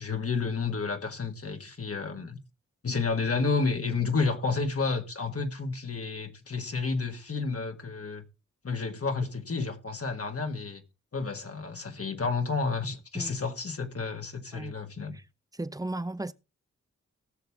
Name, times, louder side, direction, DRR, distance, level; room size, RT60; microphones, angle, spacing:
voice 1, 0.0-2.4 2.8-8.2 8.6-10.8 11.1-15.2, left 4 dB, 50° left, 1.7 m, -31 dB
voice 2, 15.6-16.3, right 2 dB, 10° right, 0.7 m, -34 dB
18.5 x 6.7 x 3.5 m
cardioid pair, 55°, 30 cm